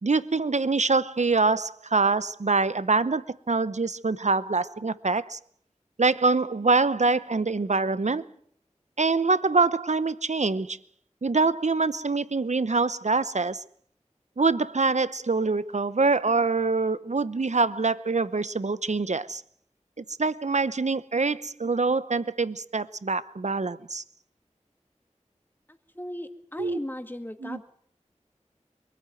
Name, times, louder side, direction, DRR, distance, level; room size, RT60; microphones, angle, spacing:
voice 1, 0.0-5.4 6.0-8.2 9.0-10.8 11.2-13.6 14.4-19.4 20.0-24.0 26.6-26.8 27.4-27.6, right 3 dB, 70° right, 0.8 m, -25 dB
voice 2, 25.7-27.6, left 1 dB, 15° left, 2.1 m, -37 dB
22.5 x 14.0 x 9.1 m
wide cardioid pair, 45°, 12 cm